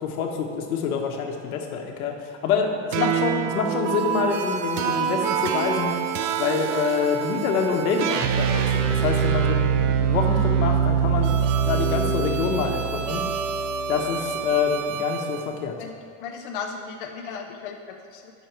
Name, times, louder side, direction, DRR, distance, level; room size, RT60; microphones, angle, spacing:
voice 1, 0.0-5.9 6.4-13.2 13.9-15.7, left 6 dB, 70° left, 2 dB, 1.4 m, -26 dB
sound 1, 2.9-15.4, right 7 dB, 60° right, 0.7 m, -25 dB
voice 2, 16.2-18.3, left 6 dB, 40° left, 2 dB, 0.4 m, -36 dB
9.9 x 6.4 x 4.6 m, 2.4 s
supercardioid pair, 180°, 44 cm